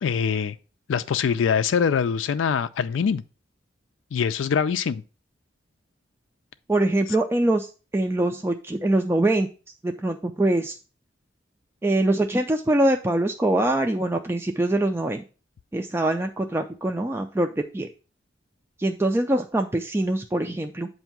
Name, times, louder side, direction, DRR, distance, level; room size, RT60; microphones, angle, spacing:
voice 1, 0.0-0.6 0.9-3.2 4.1-5.0, left 6 dB, 85° left, 0.4 m, -23 dB
voice 2, 6.7-9.5 9.8-10.7 11.8-15.2 15.7-17.5 17.7-17.9 18.8-20.9, right 1 dB, 15° right, 0.3 m, -23 dB
7.9 x 2.7 x 5.8 m
head